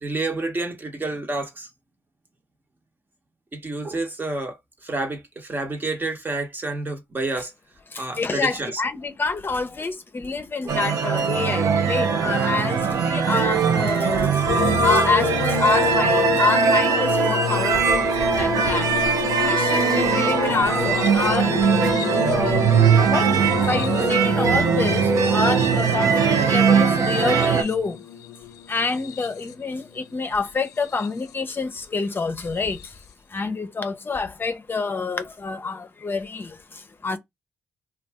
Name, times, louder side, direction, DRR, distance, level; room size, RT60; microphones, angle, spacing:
voice 1, 0.0-1.7 3.5-7.5 8.0-8.8 10.6-10.8, right 2 dB, 35° right, 1.0 m, -29 dB
voice 2, 7.9-14.4 14.8-19.0 19.4-23.3 23.6-28.0 28.7-33.0 33.3-37.2, left 4 dB, 40° left, 0.6 m, -27 dB
sound 1, 10.7-27.6, right 6 dB, 75° right, 0.6 m, -20 dB
sound 2, 14.5-29.7 30.6-31.3 32.7-32.9, left 10 dB, 90° left, 0.3 m, -29 dB
2.6 x 2.2 x 3.4 m
supercardioid pair, 50°, 6 cm